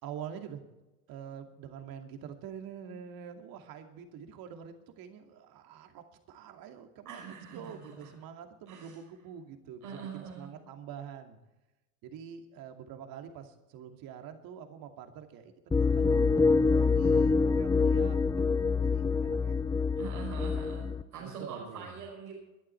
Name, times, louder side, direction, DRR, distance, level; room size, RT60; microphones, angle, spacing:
voice 1, 0.0-0.6 1.1-11.4 12.0-19.6 21.2-21.9, right 8 dB, 50° right, 5 dB, 2.5 m, -46 dB
voice 2, 7.0-8.1 8.7-9.0 9.8-10.5 20.0-22.3, right 6 dB, 90° right, -4 dB, 5.8 m, -43 dB
sound 1, 15.7-21.0, left 4 dB, 10° left, 0.5 m, -26 dB
21.5 x 11.5 x 4.5 m, 1.0 s
hypercardioid pair, 95°, 44 cm